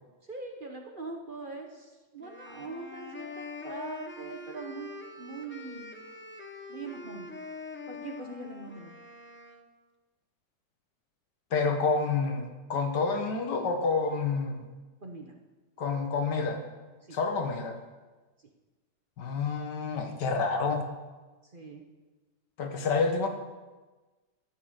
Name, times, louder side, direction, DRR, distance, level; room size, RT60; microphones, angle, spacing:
voice 1, 0.3-4.9 5.2-5.9 6.7-7.3 7.9-8.9 15.0-15.3 17.0-17.2 21.4-21.8, right 3 dB, 35° right, 2 dB, 1.0 m, -42 dB
sound 1, 2.2-9.7, left 3 dB, 15° left, 0.4 m, -44 dB
voice 2, 11.5-14.6 15.8-16.6 17.1-17.8 19.2-20.9 22.6-23.3, left 4 dB, 80° left, 5 dB, 1.9 m, -28 dB
13.0 x 6.0 x 8.0 m, 1.2 s
omnidirectional pair, 1.8 m